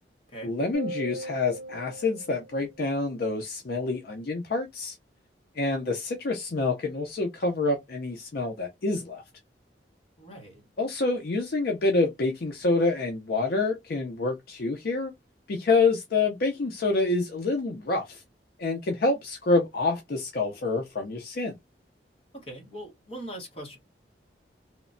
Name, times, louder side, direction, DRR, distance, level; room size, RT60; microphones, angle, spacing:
voice 1, 0.4-5.0 5.6-9.2 10.8-15.1 15.5-18.2 18.6-21.5, left 3 dB, 60° left, 0.5 m, -27 dB
sound 1, 0.7-3.3, right 1 dB, 15° right, 0.7 m, -39 dB
voice 2, 10.2-10.7 22.3-23.8, right 1 dB, 35° left, 1.1 m, -41 dB
3.0 x 2.1 x 2.5 m
head